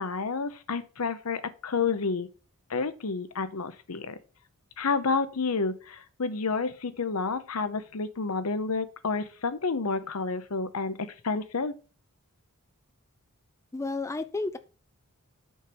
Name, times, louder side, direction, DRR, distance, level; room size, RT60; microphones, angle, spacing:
voice 1, 0.0-2.3 2.7-4.2 4.8-11.7, left 4 dB, 70° left, 0.8 m, -30 dB
voice 2, 13.7-14.6, left 3 dB, 15° left, 0.3 m, -31 dB
6.3 x 5.2 x 4.4 m
head